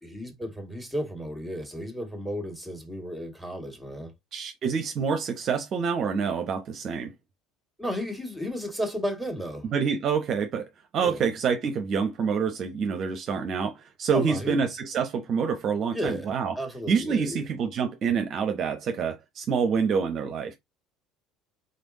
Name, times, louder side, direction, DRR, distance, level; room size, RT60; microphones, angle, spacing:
voice 1, 0.0-4.1 7.8-9.7 11.0-11.2 14.1-14.6 15.9-17.4, equal, ahead, 1.7 m, -33 dB
voice 2, 4.3-7.1 9.7-16.5 16.9-20.5, right 6 dB, 45° right, 0.6 m, -27 dB
4.0 x 3.4 x 2.6 m
figure-of-eight pair, 65°, 0 cm